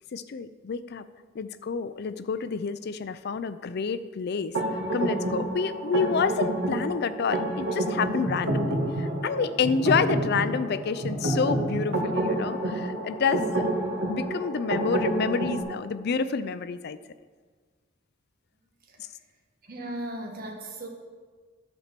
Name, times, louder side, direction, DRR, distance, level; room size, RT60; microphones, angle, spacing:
voice 1, 0.1-1.0 1.3-4.6 4.9-13.6 14.1-17.0, left 5 dB, 55° left, 13 dB, 0.4 m, -28 dB
sound 1, 4.5-15.6, right 1 dB, 80° right, 1.9 m, -29 dB
voice 2, 19.6-20.9, right 1 dB, 50° right, 0 dB, 1.3 m, -37 dB
10.5 x 4.4 x 6.7 m, 1.5 s
head